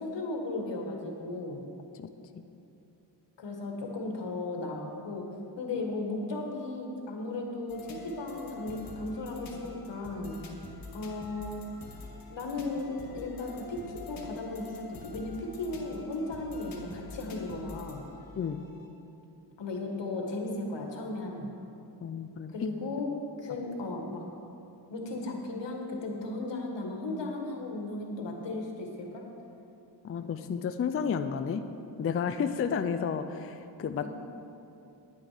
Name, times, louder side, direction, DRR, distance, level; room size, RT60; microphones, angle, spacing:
voice 1, 0.0-1.7 3.4-5.3 5.6-10.4 10.9-11.6 12.3-13.8 14.1-18.0 19.6-21.5 22.5-23.1 23.4-24.2 24.9-29.2, left 2 dB, 80° left, 1 dB, 1.6 m, -36 dB
voice 2, 2.0-2.4 18.4-18.6 22.0-22.7 30.0-31.7 32.0-34.1, left 7 dB, 35° left, 9 dB, 0.4 m, -32 dB
sound 1, 7.7-18.9, left 3 dB, 55° left, 1.7 m, -46 dB
10.0 x 9.7 x 4.9 m, 2.8 s
wide cardioid pair, 125°, 43 cm